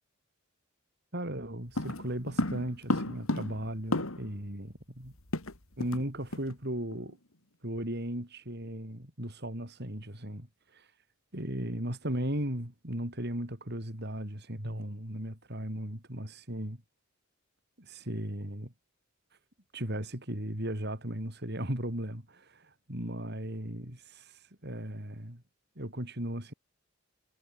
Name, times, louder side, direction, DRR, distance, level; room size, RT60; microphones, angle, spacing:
voice 1, 1.1-5.1 5.8-7.2 7.6-10.9 11.3-16.8 17.8-18.7 19.7-25.4 25.8-26.5, right 1 dB, 50° right, 5.7 m, -37 dB
sound 1, 1.8-4.4 4.7-4.8 5.0-6.1 6.3-6.5 6.9-7.1, left 1 dB, 75° left, 3.2 m, -33 dB
head